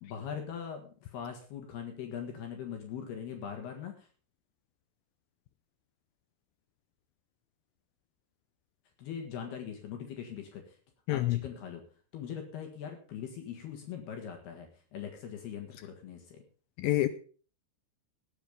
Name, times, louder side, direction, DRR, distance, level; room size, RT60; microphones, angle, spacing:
voice 1, 0.0-4.1 9.0-10.8 11.1-11.8 12.1-16.4, left 8 dB, 65° left, 3 dB, 3.6 m, -41 dB
voice 2, 11.1-11.4 16.8-17.1, left 16 dB, 85° left, 12 dB, 2.1 m, -27 dB
19.0 x 7.3 x 5.1 m, 0.40 s
omnidirectional pair, 5.1 m